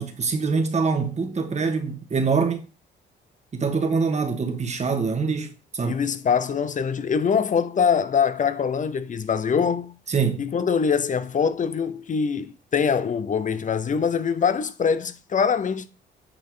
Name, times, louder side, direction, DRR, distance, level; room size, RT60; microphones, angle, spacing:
voice 1, 0.0-2.6 3.5-5.5 5.7-6.0 10.1-10.4, right 5 dB, 35° right, 1.5 m, -24 dB
voice 2, 5.8-9.9 10.4-15.9, left 6 dB, 40° left, 0.7 m, -23 dB
8.9 x 4.4 x 3.8 m
cardioid pair, 90°, 20 cm